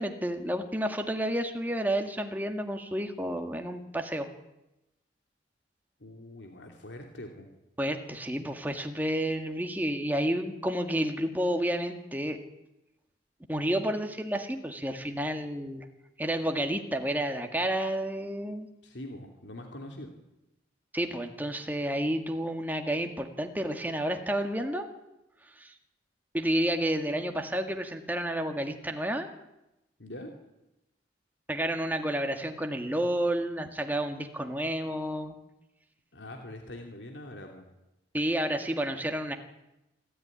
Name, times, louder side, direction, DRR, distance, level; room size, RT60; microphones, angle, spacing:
voice 1, 0.0-4.3 7.8-12.4 13.5-15.9 16.2-18.7 20.9-24.9 25.6-25.7 26.3-29.3 31.5-35.3 38.1-39.4, right 1 dB, 10° right, 4 dB, 1.9 m, -30 dB
voice 2, 6.0-7.5 18.8-20.1 30.0-30.3 36.1-37.7, left 1 dB, 80° left, 3 dB, 2.9 m, -43 dB
26.5 x 13.5 x 9.9 m, 0.93 s
head